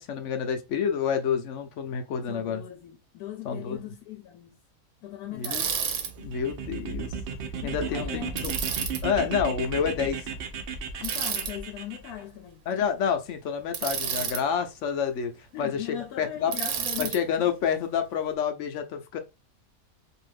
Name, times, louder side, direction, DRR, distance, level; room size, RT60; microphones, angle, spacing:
voice 1, 0.0-2.6 3.4-3.8 5.3-5.6 6.2-7.1 7.6-8.7 9.0-10.3 12.7-15.3 15.6-16.5 17.0-19.2, left 7 dB, 65° left, 0.8 m, -28 dB
voice 2, 2.3-4.5 5.0-5.8 7.6-8.4 11.0-12.7 15.5-17.2, left 11 dB, 85° left, 1.1 m, -39 dB
Bicycle, 5.4-6.1 8.4-9.0 11.0-11.5 13.7-14.4 16.5-17.2, right 7 dB, 80° right, 1.1 m, -30 dB
sound 1, 6.0-12.1, right 5 dB, 60° right, 0.6 m, -34 dB
2.7 x 2.5 x 3.2 m
omnidirectional pair, 1.5 m